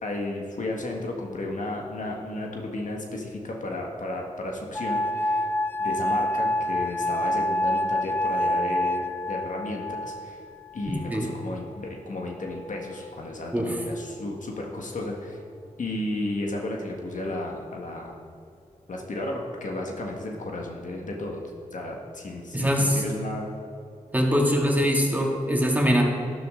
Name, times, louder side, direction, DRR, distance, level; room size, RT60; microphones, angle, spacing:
voice 1, 0.0-5.5 5.8-10.4 10.7-15.4 15.8-18.2 18.9-21.4 21.7-23.5 24.4-24.5, left 2 dB, 70° left, 0 dB, 1.7 m, -33 dB
sound 1, 4.7-11.7 12.5-13.1, left 1 dB, 15° left, 0.4 m, -28 dB
voice 2, 22.5-23.0 24.1-26.0, equal, 10° right, -1 dB, 2.5 m, -22 dB
12.0 x 11.0 x 3.8 m, 2.5 s
cardioid pair, 40°, 14 cm